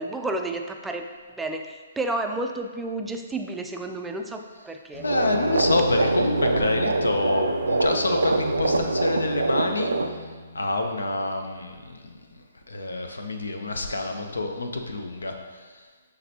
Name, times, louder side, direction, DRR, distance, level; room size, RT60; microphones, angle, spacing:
voice 1, 0.0-5.0, right 2 dB, 5° right, 4 dB, 0.3 m, -31 dB
Bowed string instrument, 4.9-10.8, left 1 dB, 30° left, 1.2 m, -35 dB
voice 2, 5.0-10.2 10.5-15.8, left 2 dB, 90° left, 4 dB, 0.5 m, -28 dB
sound 1, 5.0-10.1, right 3 dB, 90° right, 0.3 m, -24 dB
5.8 x 3.3 x 2.8 m, 1.5 s
hypercardioid pair, 135°, 0 cm